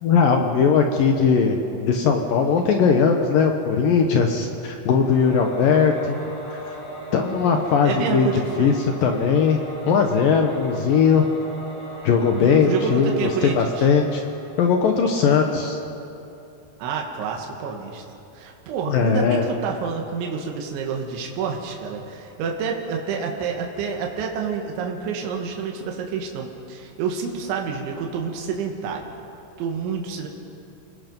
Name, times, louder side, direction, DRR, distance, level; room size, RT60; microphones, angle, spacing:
voice 1, 0.0-6.2 6.5-6.8 7.1-8.3 8.6-8.7 9.0-9.6 9.9-11.2 12.0-14.2 14.6-15.8 18.9-19.4, left 6 dB, 70° left, 3 dB, 2.2 m, -19 dB
Singing / Musical instrument, 5.0-15.0, right 1 dB, 25° left, 6.2 m, -39 dB
voice 2, 7.8-8.8 12.4-13.9 16.8-18.0 18.3-29.2 29.6-30.3, right 6 dB, 85° right, 1 dB, 4.0 m, -28 dB
29.0 x 20.0 x 5.3 m, 2.9 s
omnidirectional pair, 5.2 m